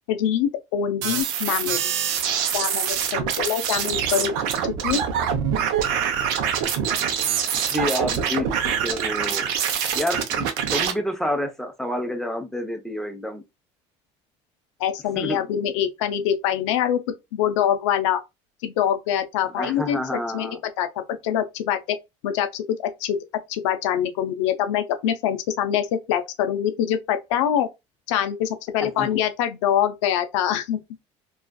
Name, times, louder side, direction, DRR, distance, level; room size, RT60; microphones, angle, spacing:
voice 1, 0.1-1.8 2.5-4.3 4.8-5.0 14.8-17.0 17.3-18.2 18.6-20.0 20.3-20.9 21.2-21.8 22.2-23.2 23.5-27.7 28.1-30.8, left 9 dB, 90° left, 0.4 m, -24 dB
sound 1, 1.0-10.9, right 8 dB, 75° right, 0.6 m, -25 dB
voice 2, 7.7-9.5 9.9-13.4 15.2-15.5 19.5-20.6 28.8-29.2, left 1 dB, ahead, 0.7 m, -29 dB
2.4 x 2.3 x 2.2 m
supercardioid pair, 85°, 15 cm